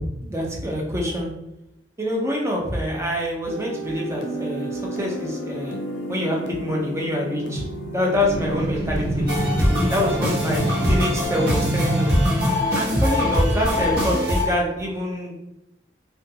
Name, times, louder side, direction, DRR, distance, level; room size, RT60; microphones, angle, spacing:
voice 1, 0.0-1.3 2.0-5.8 6.1-7.6 7.9-9.3 9.9-12.1 12.7-15.3, left 1 dB, 15° right, -1 dB, 0.5 m, -25 dB
sound 1, 3.5-11.3, equal, 75° left, 0.5 m, -32 dB
sound 2, 8.2-14.0, equal, 35° right, 1.2 m, -26 dB
sound 3, 9.3-14.4, left 1 dB, 60° right, 0.8 m, -24 dB
2.6 x 2.2 x 2.6 m, 0.88 s
head